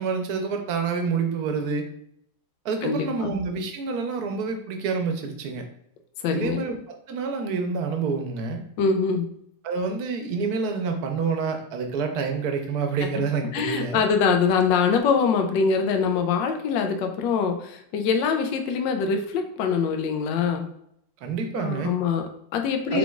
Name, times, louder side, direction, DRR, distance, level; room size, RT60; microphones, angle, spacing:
voice 1, 0.0-1.9 2.6-5.6 6.3-6.8 7.1-8.6 9.6-14.0 21.2-21.9 22.9-23.0, right 5 dB, 65° right, 4 dB, 1.1 m, -27 dB
voice 2, 2.8-3.3 6.2-6.6 8.8-9.3 13.0-13.1 13.5-20.6 21.6-23.0, left 5 dB, 80° left, 5 dB, 1.3 m, -24 dB
4.8 x 3.8 x 2.3 m, 0.73 s
omnidirectional pair, 2.1 m